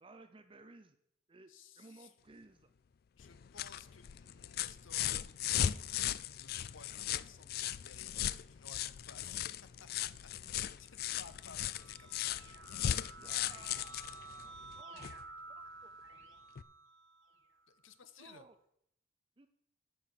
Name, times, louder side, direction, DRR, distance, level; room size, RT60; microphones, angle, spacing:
voice 1, 0.0-1.0 1.3-2.7 13.1-15.1 15.5-16.0 18.2-18.6 19.4-19.5, right 3 dB, 25° right, 8 dB, 0.6 m, -58 dB
voice 2, 1.5-2.1 3.2-12.4 17.7-18.4, left 5 dB, 75° left, 12 dB, 0.9 m, -58 dB
sound 1, 3.2-15.2 16.6-16.7, left 11 dB, 50° left, 0.3 m, -38 dB
Keyboard (musical), 11.0-17.6, right 3 dB, 70° right, 2.7 m, -52 dB
13.0 x 5.8 x 6.6 m, 0.74 s
head